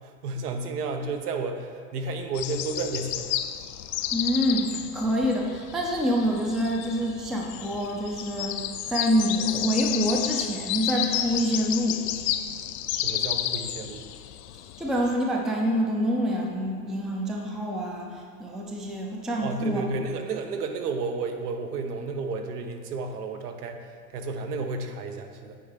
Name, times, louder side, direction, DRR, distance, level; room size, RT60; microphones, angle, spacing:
voice 1, 0.0-3.4 12.9-14.0 19.4-25.6, right 3 dB, 75° right, 5 dB, 1.1 m, -32 dB
sound 1, 2.3-15.1, left 12 dB, 50° left, 0.5 m, -32 dB
voice 2, 4.1-8.6 8.9-12.0 14.8-19.8, equal, ahead, -1 dB, 0.4 m, -26 dB
8.7 x 4.3 x 5.2 m, 2.1 s
hypercardioid pair, 120°, 46 cm